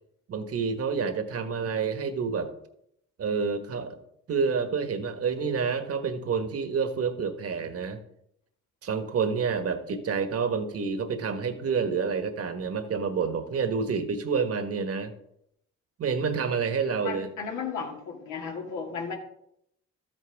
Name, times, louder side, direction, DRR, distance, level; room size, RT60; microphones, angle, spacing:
voice 1, 0.3-2.5 3.2-4.0 4.3-8.0 8.8-15.1 16.0-17.3, right 5 dB, 50° right, 8 dB, 1.4 m, -28 dB
voice 2, 17.0-19.1, left 6 dB, 80° left, 1 dB, 2.3 m, -34 dB
12.5 x 9.1 x 3.5 m, 0.76 s
cardioid pair, 90°, 30 cm